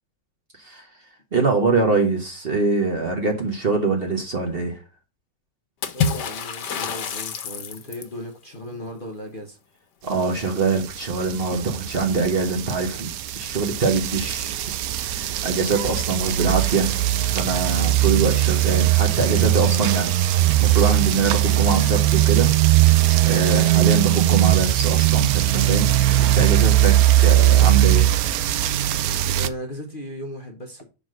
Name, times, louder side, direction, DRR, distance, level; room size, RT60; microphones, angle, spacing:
voice 1, 1.3-4.8 10.0-14.6 14.9-16.9 17.2-22.5 22.9-28.1, right 4 dB, 40° right, 1.2 m, -24 dB
Water / Splash splatter, 5.8-8.2, left 5 dB, 85° left, 1.5 m, -27 dB
voice 2, 5.9-9.6 29.3-30.8, equal, 35° left, 1.0 m, -36 dB
sound 1, 10.9-29.5, right 14 dB, 70° right, 0.9 m, -19 dB
6.0 x 3.9 x 6.2 m
omnidirectional pair, 1.8 m